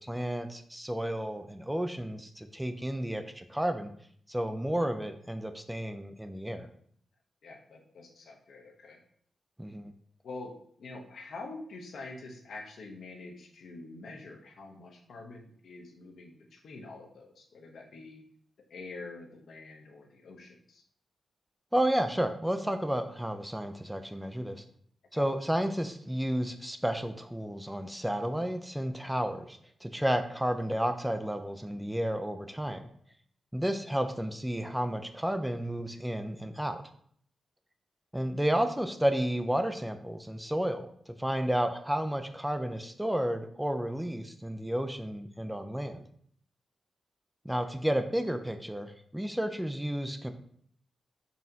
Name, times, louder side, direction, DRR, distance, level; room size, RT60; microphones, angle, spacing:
voice 1, 0.0-3.9 4.3-6.7 9.6-9.8 21.7-24.6 25.1-32.9 33.5-36.8 38.1-40.9 41.2-46.0 47.4-50.3, equal, 5° right, 8 dB, 0.4 m, -31 dB
voice 2, 7.4-9.0 10.2-18.2 18.7-20.8 25.1-25.3 33.9-34.0 47.6-47.7, left 3 dB, 75° left, 2 dB, 0.7 m, -46 dB
4.1 x 3.5 x 2.7 m, 0.62 s
cardioid pair, 90°, 0 cm